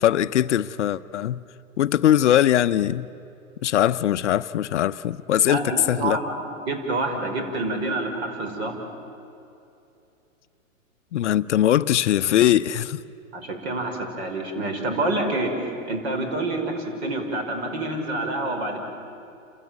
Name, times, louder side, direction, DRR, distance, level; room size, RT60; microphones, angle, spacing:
voice 1, 0.0-1.4 1.8-3.1 3.6-6.2 11.1-13.0, left 11 dB, 60° left, 0.7 m, -21 dB
voice 2, 5.5-6.4 6.6-8.7 13.3-15.5 15.9-18.8, right 2 dB, 50° right, 5.3 m, -27 dB
29.5 x 14.0 x 9.3 m
hypercardioid pair, 140°, 41 cm